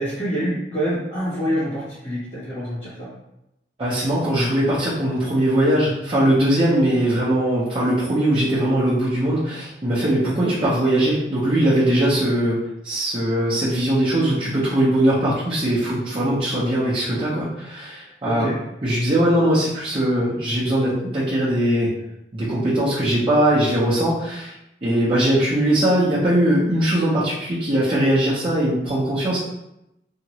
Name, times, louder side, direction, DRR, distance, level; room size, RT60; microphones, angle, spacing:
voice 1, 0.0-3.1 10.2-10.5 18.2-18.5, equal, 35° left, -14 dB, 1.2 m, -26 dB
voice 2, 3.8-12.6 12.8-18.5 18.8-21.9 22.3-24.5 24.8-29.4, right 1 dB, 30° right, -10 dB, 0.6 m, -20 dB
2.8 x 2.5 x 2.9 m, 0.86 s
head